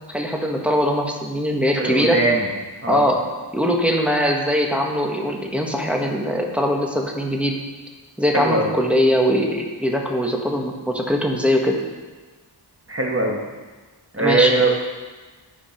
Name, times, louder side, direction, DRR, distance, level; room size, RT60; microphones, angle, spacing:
voice 1, 0.1-2.2 2.9-3.2 3.5-7.6 8.2-11.8 14.2-14.5, equal, 5° right, 0 dB, 1.6 m, -21 dB
voice 2, 1.8-2.5 2.8-3.1 8.3-8.7 12.9-13.4 14.1-14.7, right 2 dB, 30° right, 0 dB, 1.5 m, -20 dB
13.5 x 5.2 x 5.1 m, 1.3 s
wide cardioid pair, 45°, 43 cm